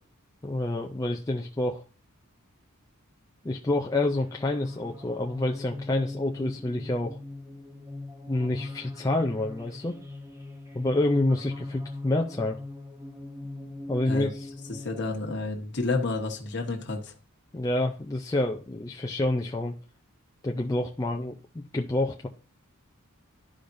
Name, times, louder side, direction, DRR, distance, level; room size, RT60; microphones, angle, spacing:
voice 1, 0.4-1.8 3.4-7.2 8.3-10.0 10.7-12.6 13.9-14.5 17.5-19.7 20.4-22.3, left 2 dB, 15° left, 0 dB, 0.4 m, -28 dB
sound 1, 4.1-15.0, left 2 dB, 10° right, 0.8 m, -41 dB
voice 2, 14.7-17.1, left 3 dB, 55° left, 2 dB, 1.2 m, -30 dB
11.5 x 5.0 x 2.6 m, 0.36 s
head